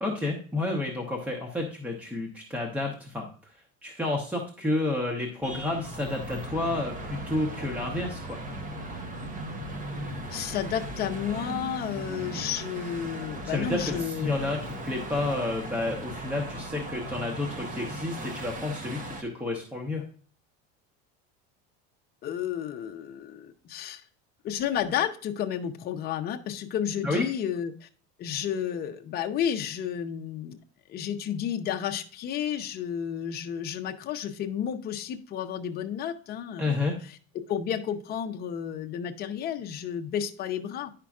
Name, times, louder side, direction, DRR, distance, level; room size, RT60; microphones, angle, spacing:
voice 1, 0.0-3.5 3.8-8.4 13.4-20.0 27.0-27.3 36.6-36.9, left 2 dB, 5° right, 1 dB, 0.9 m, -30 dB
sound 1, 5.4-19.2, right 1 dB, 25° right, 1.0 m, -37 dB
voice 2, 10.3-14.4 15.6-15.7 22.2-24.0 24.4-27.9 28.2-30.6 30.9-36.9 37.3-40.9, left 9 dB, 30° left, 5 dB, 0.7 m, -32 dB
10.5 x 5.7 x 2.4 m, 0.42 s
cardioid pair, 175°, 30 cm